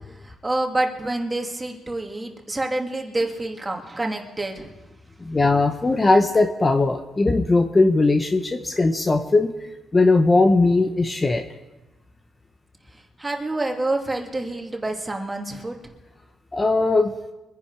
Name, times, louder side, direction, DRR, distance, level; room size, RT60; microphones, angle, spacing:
voice 1, 0.2-4.7 13.2-15.8, right 2 dB, 15° right, 2 dB, 2.3 m, -27 dB
voice 2, 5.2-9.5 9.9-11.4 16.5-17.1, left 3 dB, 25° left, 6 dB, 0.9 m, -19 dB
24.0 x 10.5 x 4.7 m, 1.1 s
cardioid pair, 90°, 0 cm